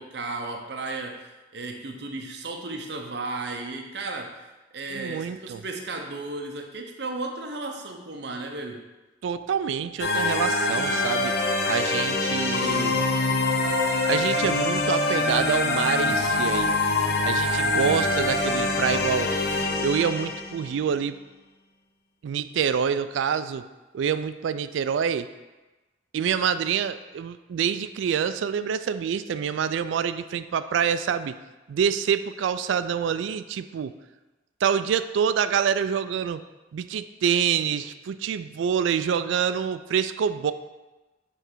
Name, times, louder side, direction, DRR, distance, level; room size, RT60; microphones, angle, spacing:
voice 1, 0.0-4.5 4.7-8.9, right 3 dB, 60° right, 2 dB, 0.7 m, -34 dB
voice 2, 4.9-5.6 9.2-11.3 11.7-13.0 14.1-16.7 17.2-19.3 19.8-21.2 22.2-23.6 23.9-25.3 26.1-31.4 31.7-33.9 34.6-36.4 36.7-40.5, right 7 dB, 80° right, 12 dB, 0.3 m, -26 dB
sound 1, 10.0-20.8, left 2 dB, 55° left, 0.7 m, -24 dB
6.9 x 3.3 x 4.6 m, 1.1 s
head